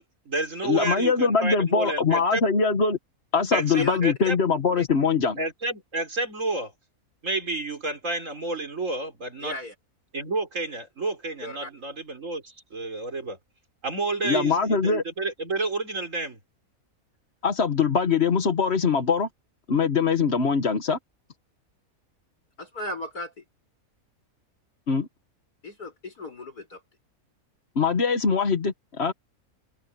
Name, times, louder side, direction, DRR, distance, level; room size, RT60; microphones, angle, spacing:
voice 1, 0.0-2.4 3.5-4.4 5.4-6.7 7.2-9.6 10.1-13.4 13.8-16.4, right 2 dB, 55° right, 4.6 m, -30 dB
voice 2, 0.6-3.0 3.3-5.4 14.2-15.0 17.4-19.3 19.7-21.0 24.9-25.1 27.7-29.1, left 5 dB, 45° left, 1.6 m, -22 dB
voice 3, 3.5-4.3 4.8-4.9 9.4-9.7 11.4-11.7 22.6-23.4 25.6-26.8, left 3 dB, 85° left, 7.4 m, -35 dB
omnidirectional pair, 1.6 m